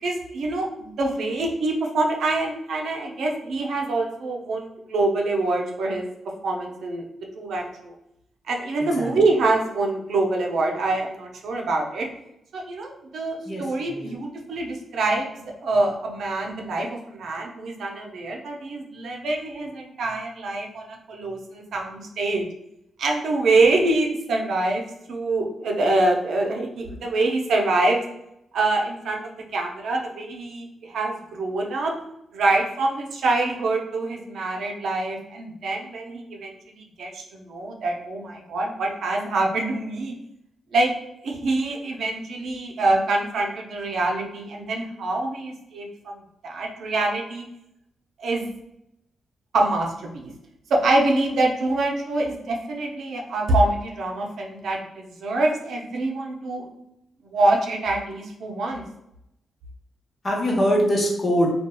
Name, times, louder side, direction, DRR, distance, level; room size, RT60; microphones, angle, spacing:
voice 1, 0.0-6.1 6.4-7.0 7.4-7.9 8.5-12.1 12.5-22.5 23.0-28.1 28.5-31.9 32.3-40.1 40.7-40.9 41.2-47.4 48.2-48.5 49.5-50.3 50.7-56.7 57.2-58.8, right 2 dB, 75° right, 0 dB, 0.5 m, -25 dB
voice 2, 13.4-14.2 60.2-61.5, equal, 45° left, -2 dB, 1.0 m, -23 dB
2.8 x 2.3 x 2.2 m, 0.82 s
supercardioid pair, 55°, 0 cm